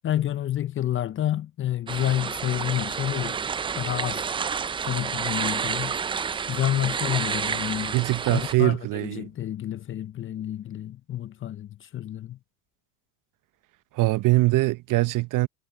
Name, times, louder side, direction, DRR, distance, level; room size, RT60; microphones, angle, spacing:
voice 1, 0.0-3.4 3.8-4.3 4.9-5.9 6.5-8.0 8.3-12.4, left 12 dB, 30° left, 0.6 m, -29 dB
sound 1, 1.9-8.5, right 6 dB, 15° right, 0.3 m, -30 dB
voice 2, 7.9-9.3 13.9-15.5, right 20 dB, 45° right, 0.9 m, -22 dB
hypercardioid pair, 85°, 44 cm